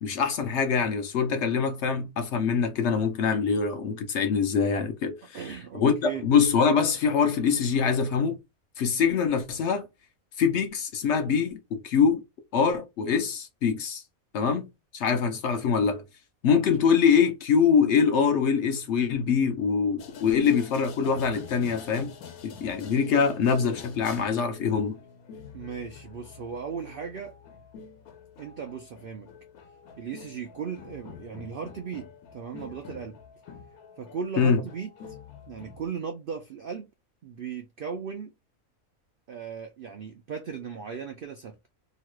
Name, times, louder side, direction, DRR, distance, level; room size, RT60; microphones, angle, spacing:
voice 1, 0.0-5.4 5.7-8.4 8.8-9.9 10.4-12.2 12.5-14.0 14.3-14.7 14.9-16.0 16.4-22.2 22.4-25.0 34.4-34.6, left 6 dB, 65° left, 0.8 m, -24 dB
voice 2, 5.3-6.3 25.5-27.4 28.4-29.3 30.0-33.2 34.0-34.9 35.5-36.9 37.2-38.3 39.3-41.6, right 6 dB, 70° right, 0.5 m, -37 dB
sound 1, 20.0-35.9, left 6 dB, 80° left, 1.2 m, -47 dB
3.0 x 2.3 x 2.9 m
omnidirectional pair, 1.5 m